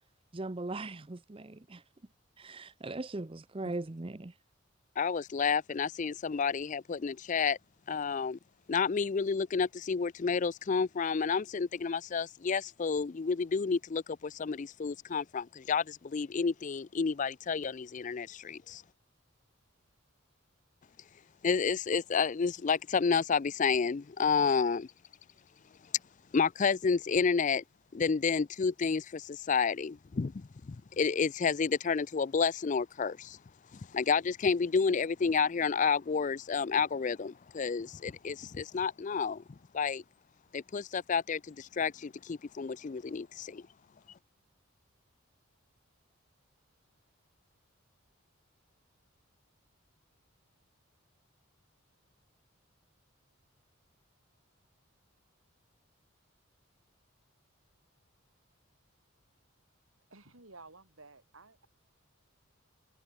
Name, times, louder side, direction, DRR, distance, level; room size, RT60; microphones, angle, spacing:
voice 1, 0.3-1.8 2.4-4.4, right 2 dB, 25° right, 0.7 m, -39 dB
voice 2, 5.0-7.6 7.9-8.4 8.7-18.8 21.4-24.9 26.3-27.6 27.9-33.4 33.7-39.4 39.7-40.0 40.5-43.6, left 5 dB, 35° left, 0.4 m, -30 dB
voice 3, 60.1-61.7, right 3 dB, 75° right, 6.1 m, -54 dB
head